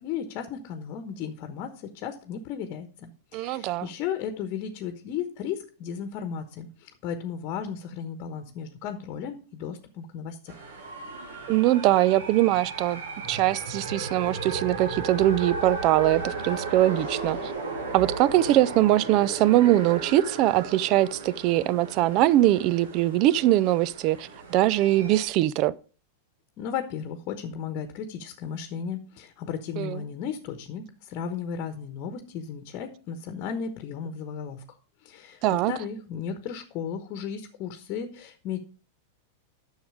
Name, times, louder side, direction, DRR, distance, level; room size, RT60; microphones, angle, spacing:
voice 1, 0.0-10.4 26.6-34.6 35.0-38.6, left 7 dB, 45° left, 1.1 m, -35 dB
voice 2, 3.3-3.9 11.5-13.0 13.3-17.5 17.9-25.7 29.8-30.0 35.4-35.7, right 14 dB, 45° right, 0.4 m, -22 dB
sound 1, 10.5-25.3, right 3 dB, 65° right, 2.1 m, -35 dB
10.0 x 6.4 x 4.9 m
figure-of-eight pair, 95°, 0 cm